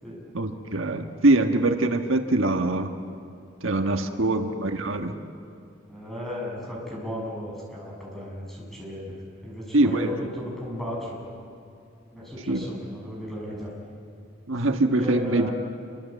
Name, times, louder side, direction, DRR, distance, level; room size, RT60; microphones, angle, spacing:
voice 1, 0.3-2.9 3.6-5.1 9.7-10.1 12.5-12.6 14.5-15.5, right 2 dB, 80° right, 5 dB, 1.5 m, -23 dB
voice 2, 4.0-4.4 5.9-11.2 12.1-13.7 14.9-15.5, left 1 dB, ahead, -3 dB, 7.0 m, -35 dB
27.0 x 24.5 x 8.4 m, 2.6 s
head